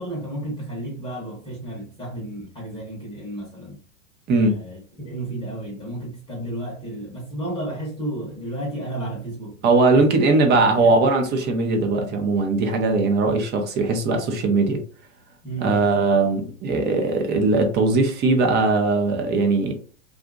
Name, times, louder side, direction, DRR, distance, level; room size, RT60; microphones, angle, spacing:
voice 1, 0.0-3.8 4.4-9.6 9.9-10.2 10.5-11.0 15.4-16.1, right 1 dB, 10° left, 0.9 m, -32 dB
voice 2, 4.3-4.6 9.6-14.8 15.6-19.7, right 3 dB, 25° right, 0.7 m, -20 dB
2.8 x 2.4 x 2.4 m
hypercardioid pair, 125°, 39 cm